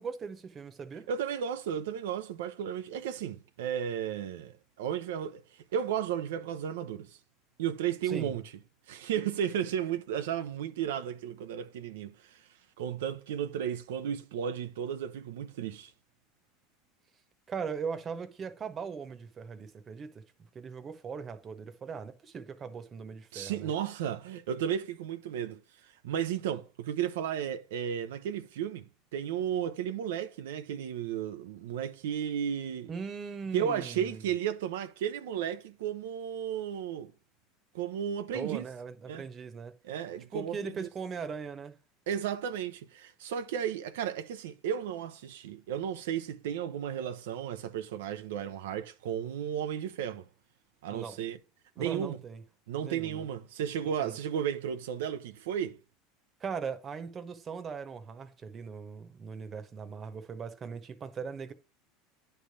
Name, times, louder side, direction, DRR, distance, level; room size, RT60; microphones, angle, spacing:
voice 1, 0.0-1.1 8.0-8.4 17.5-23.7 32.9-34.3 38.3-39.7 40.3-41.8 50.9-51.2 51.8-52.4 52.8-53.3 54.0-54.2 56.4-61.5, right 6 dB, 30° right, 1.1 m, -39 dB
voice 2, 1.1-5.4 5.7-7.1 7.6-8.4 8.9-12.4 12.8-15.9 23.3-25.6 26.0-32.9 33.5-37.1 37.7-38.6 39.1-39.3 39.8-40.9 42.1-50.3 50.8-51.4 51.8-52.2 52.7-55.8, right 9 dB, 85° right, 0.6 m, -34 dB
10.0 x 3.4 x 6.7 m
supercardioid pair, 120°, 0 cm